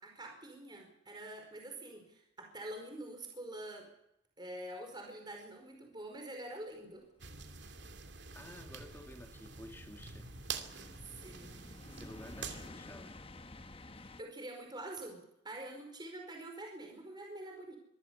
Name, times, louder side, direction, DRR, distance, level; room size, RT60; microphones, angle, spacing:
voice 1, 0.0-3.9 4.4-7.1 11.1-11.6 14.0-17.8, right 1 dB, 25° right, 4.9 m, -46 dB
sound 1, 7.2-14.2, left 2 dB, 30° left, 1.1 m, -53 dB
sound 2, 7.2-12.7, right 5 dB, 65° right, 2.6 m, -46 dB
voice 2, 8.3-10.3 11.9-13.2, left 1 dB, 10° left, 2.8 m, -52 dB
25.0 x 15.5 x 8.2 m
head